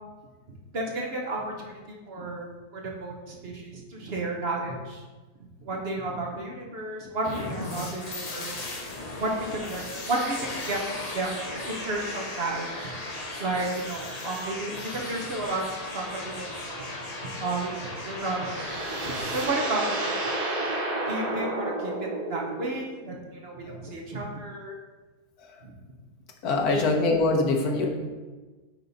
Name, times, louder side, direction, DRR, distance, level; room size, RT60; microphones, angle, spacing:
voice 1, 0.5-2.5 2.7-5.0 5.6-8.7 9.2-11.3 11.6-13.0 13.4-15.7 15.9-16.9 17.4-20.2 21.1-24.7 25.6-25.7 26.7-26.9, right 2 dB, 40° right, -1 dB, 1.0 m, -32 dB
sound 1, 7.2-19.4, left 2 dB, 35° left, 0.6 m, -36 dB
sound 2, 17.7-22.8, right 2 dB, 60° right, 1.6 m, -31 dB
voice 2, 26.4-27.9, left 3 dB, 60° left, 1 dB, 1.4 m, -23 dB
8.8 x 3.7 x 4.1 m, 1.3 s
omnidirectional pair, 1.9 m